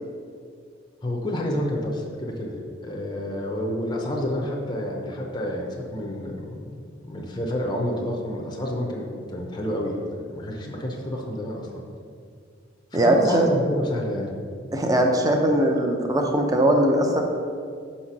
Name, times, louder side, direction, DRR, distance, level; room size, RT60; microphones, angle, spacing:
voice 1, 1.0-2.6 2.8-6.7 7.1-10.0 10.3-11.8 12.9-14.3, left 1 dB, 20° left, -1 dB, 0.7 m, -29 dB
voice 2, 12.9-13.4 14.7-17.2, right 1 dB, 20° right, 2 dB, 0.6 m, -20 dB
5.8 x 4.2 x 6.0 m, 2.3 s
head